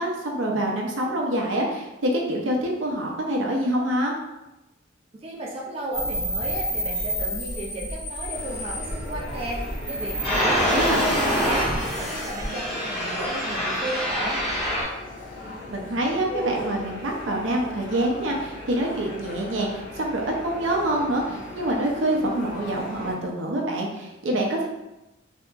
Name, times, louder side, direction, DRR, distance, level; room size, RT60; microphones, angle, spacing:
voice 1, 0.0-4.1 10.7-11.0 15.7-24.7, right 1 dB, 75° right, -1 dB, 0.6 m, -26 dB
voice 2, 5.2-9.6 9.9-14.4, right 1 dB, 30° right, -3 dB, 0.4 m, -34 dB
sound 1, 5.9-14.8, equal, 35° left, 1.4 m, -27 dB
sound 2, 8.3-23.1, left 1 dB, 80° left, 1.0 m, -38 dB
3.4 x 2.8 x 2.4 m, 0.98 s
head